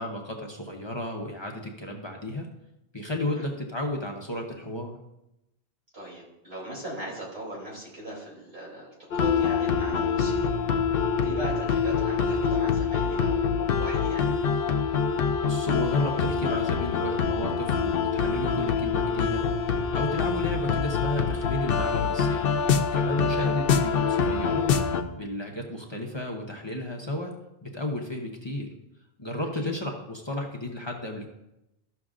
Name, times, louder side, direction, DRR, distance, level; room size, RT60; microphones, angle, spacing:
voice 1, 0.0-2.5 2.9-5.0 15.5-19.4 19.9-22.5 22.9-24.7 25.1-27.3 27.6-28.7 29.2-31.3, left 1 dB, 30° left, 0 dB, 0.9 m, -33 dB
voice 2, 5.9-10.5 11.2-14.4 23.3-23.5 29.6-29.7, equal, 75° right, -5 dB, 3.2 m, -39 dB
sound 1, 9.1-25.0, left 6 dB, 65° left, 0.8 m, -25 dB
14.0 x 6.3 x 2.5 m, 0.89 s
omnidirectional pair, 1.1 m